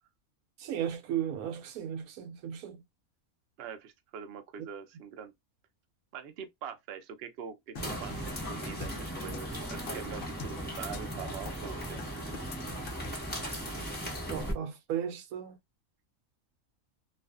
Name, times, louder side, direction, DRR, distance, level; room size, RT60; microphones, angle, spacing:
voice 1, 0.6-2.8 14.3-15.6, right 9 dB, 85° right, 1.1 m, -35 dB
voice 2, 3.6-5.3 6.1-12.0, right 7 dB, 60° right, 0.7 m, -44 dB
sound 1, 7.8-13.4, left 4 dB, 75° left, 0.5 m, -45 dB
sound 2, 7.8-14.5, equal, 10° left, 0.8 m, -37 dB
2.4 x 2.4 x 2.3 m
omnidirectional pair, 1.5 m